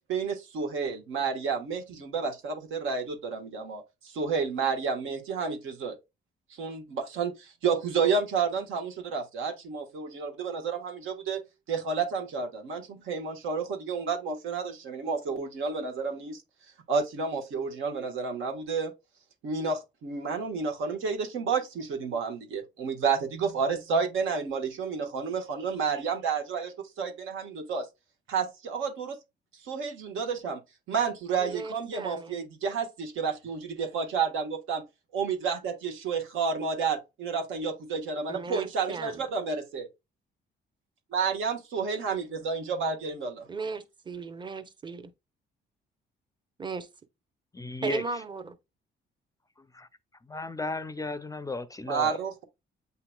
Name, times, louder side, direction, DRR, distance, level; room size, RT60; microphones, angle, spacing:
voice 1, 0.1-6.0 6.5-16.4 16.9-18.9 19.4-27.9 28.3-29.2 29.6-30.6 30.9-34.8 35.1-39.9 41.1-43.5 51.9-52.4, right 5 dB, 80° right, 1.3 m, -30 dB
voice 2, 31.4-32.3 38.3-39.2 43.5-45.1 46.6-46.9 47.8-48.5, right 4 dB, 25° right, 0.7 m, -36 dB
voice 3, 47.5-48.0 49.7-49.9 50.3-52.2, left 3 dB, 15° left, 0.4 m, -34 dB
8.2 x 2.9 x 2.2 m
cardioid pair, 90°, 20 cm